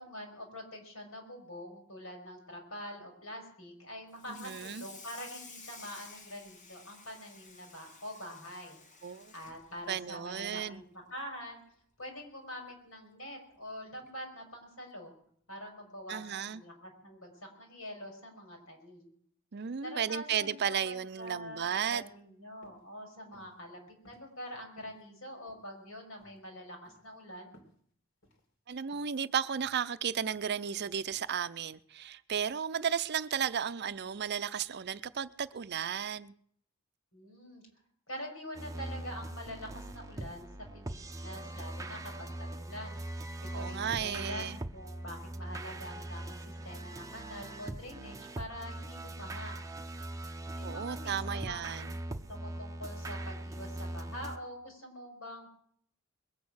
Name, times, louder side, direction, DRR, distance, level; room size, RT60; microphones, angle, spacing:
voice 1, 0.0-11.6 12.0-15.1 15.5-17.3 17.6-19.1 19.8-27.5 37.1-37.6 38.1-40.5 40.7-43.0 43.5-49.6 50.5-51.0 51.3-55.5, equal, 85° left, 5.2 m, -45 dB
Water tap faucet / Sink (filling or washing), 4.1-10.8 11.2-11.4 11.8-11.9 12.3-12.4 13.5-13.6 14.1-14.3, left 4 dB, 35° left, 1.3 m, -53 dB
voice 2, 4.3-4.8 9.0-9.3 9.9-10.8 16.1-16.6 19.5-22.0 28.7-36.3 43.5-44.6 50.6-51.9, right 8 dB, 50° right, 0.5 m, -34 dB
sound 1, 21.9-22.2 22.6-22.8 23.3-23.6 24.0-24.5 24.8-25.0 25.5-25.9 26.2-26.4 26.8-27.1 27.5-27.8 28.2-28.4 28.9-29.2 29.6-29.8 30.3-30.6 31.1-31.2, equal, 65° left, 2.6 m, -60 dB
sound 2, 38.5-54.4, right 1 dB, 15° right, 0.7 m, -41 dB
21.5 x 8.4 x 6.3 m
head